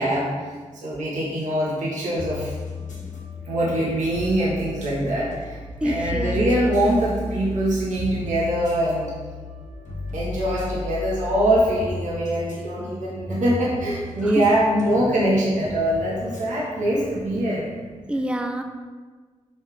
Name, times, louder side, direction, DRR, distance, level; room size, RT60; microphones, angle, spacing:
voice 1, 0.0-2.5 3.4-9.1 10.1-17.7 18.1-18.2, right 1 dB, 85° right, -6 dB, 1.3 m, -23 dB
sound 1, 2.2-17.4, left 2 dB, 90° left, 1.3 m, -35 dB
voice 2, 2.8-3.2 5.8-6.5 14.2-14.5 18.1-18.6, right 1 dB, 10° right, 5 dB, 0.5 m, -27 dB
5.5 x 5.4 x 3.3 m, 1.4 s
cardioid pair, 60°, 12 cm